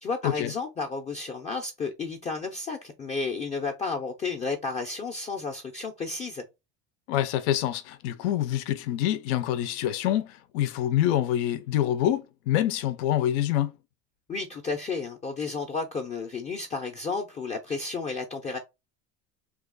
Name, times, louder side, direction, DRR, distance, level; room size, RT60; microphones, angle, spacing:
voice 1, 0.0-6.4 14.3-18.6, left 4 dB, 20° left, 0.4 m, -32 dB
voice 2, 7.1-13.7, left 12 dB, 85° left, 0.5 m, -26 dB
2.9 x 2.3 x 3.6 m
cardioid pair, 140°, 33 cm